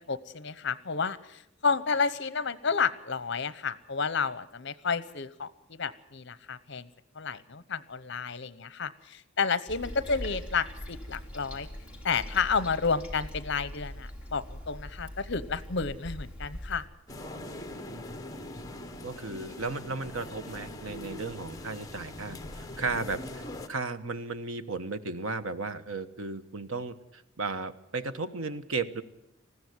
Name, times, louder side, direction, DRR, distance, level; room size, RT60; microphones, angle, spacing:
voice 1, 0.1-6.9 7.1-11.7 12.0-16.8, left 5 dB, 55° left, 16 dB, 0.9 m, -31 dB
Toilet flush, 9.7-16.9, equal, 5° right, 3.0 m, -42 dB
sound 1, 17.1-23.7, left 1 dB, 15° left, 1.3 m, -41 dB
voice 2, 19.0-29.0, right 3 dB, 80° right, 11 dB, 1.2 m, -35 dB
20.0 x 15.5 x 9.5 m, 0.83 s
head